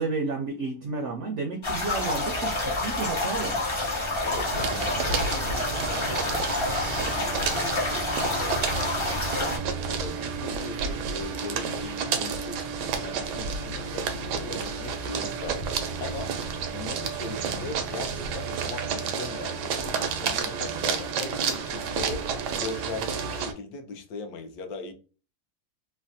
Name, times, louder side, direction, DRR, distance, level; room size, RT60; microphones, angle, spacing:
voice 1, 0.0-3.6, right 3 dB, 75° right, 0.6 m, -31 dB
sound 1, 1.6-9.6, left 2 dB, 45° left, 0.3 m, -28 dB
voice 2, 4.2-9.5 9.9-15.6 16.0-16.3 16.7-22.3 22.6-24.9, left 3 dB, 70° left, 1.0 m, -39 dB
sound 2, 4.5-23.5, right 6 dB, 90° right, 1.2 m, -31 dB
3.2 x 2.1 x 2.6 m
omnidirectional pair, 1.8 m